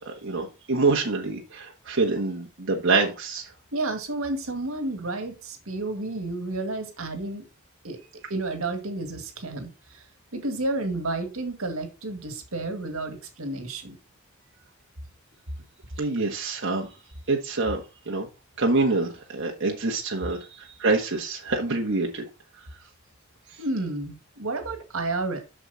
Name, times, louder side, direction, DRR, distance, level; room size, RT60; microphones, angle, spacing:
voice 1, 0.0-3.5 16.0-16.9 17.3-17.8 18.1-18.3 18.6-22.2, right 3 dB, 60° right, 1.5 m, -26 dB
voice 2, 3.7-7.4 7.8-10.0 10.3-14.0 23.6-25.4, right 2 dB, 85° right, 2.0 m, -31 dB
7.6 x 6.4 x 4.1 m
head